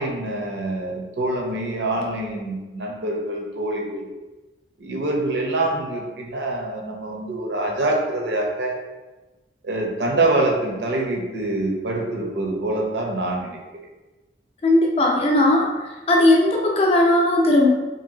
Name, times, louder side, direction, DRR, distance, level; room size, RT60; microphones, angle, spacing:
voice 1, 0.0-4.1 4.8-8.8 9.6-13.6, right 2 dB, 80° right, 0 dB, 0.6 m, -25 dB
voice 2, 14.6-15.7 16.1-17.7, left 1 dB, 35° left, -1 dB, 0.4 m, -17 dB
2.7 x 2.6 x 2.7 m, 1.1 s
head